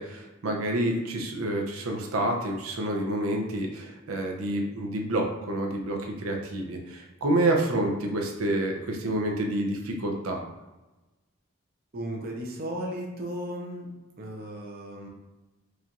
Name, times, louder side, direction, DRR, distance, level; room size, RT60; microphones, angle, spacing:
voice 1, 0.0-10.4, right 1 dB, 85° right, 1 dB, 0.6 m, -28 dB
voice 2, 11.9-13.9 14.2-15.1, right 1 dB, 45° right, -1 dB, 0.6 m, -35 dB
4.7 x 2.5 x 2.9 m, 1.1 s
head